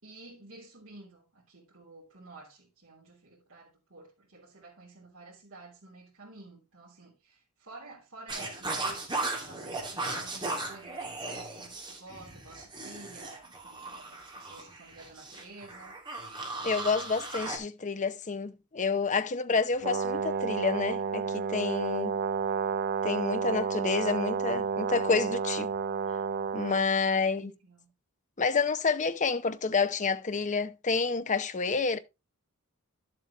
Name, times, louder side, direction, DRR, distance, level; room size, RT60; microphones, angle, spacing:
voice 1, 0.0-16.0 27.1-27.9, right 2 dB, 65° right, 3.4 m, -51 dB
sound 1, 8.3-17.6, right 2 dB, 20° right, 2.6 m, -37 dB
voice 2, 16.6-22.1 23.0-25.7 26.5-27.5 28.4-32.0, left 4 dB, 35° left, 0.8 m, -29 dB
Brass instrument, 19.8-26.8, right 5 dB, 45° right, 0.4 m, -31 dB
11.5 x 7.7 x 3.0 m
head